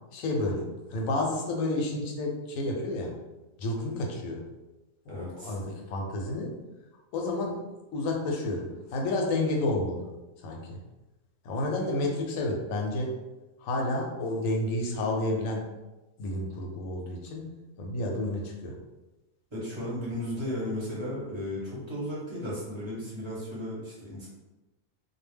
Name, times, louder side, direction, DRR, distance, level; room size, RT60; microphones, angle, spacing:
voice 1, 0.1-3.1 3.6-4.4 5.0-6.5 7.1-7.7 7.9-10.0 10.4-10.8 11.4-13.1 13.6-15.6 16.2-17.5 17.8-18.8, left 2 dB, 80° left, 0 dB, 1.0 m, -30 dB
voice 2, 5.1-5.5 19.5-24.3, left 1 dB, 25° right, -7 dB, 0.7 m, -35 dB
2.4 x 2.1 x 3.3 m, 1.1 s
omnidirectional pair, 1.4 m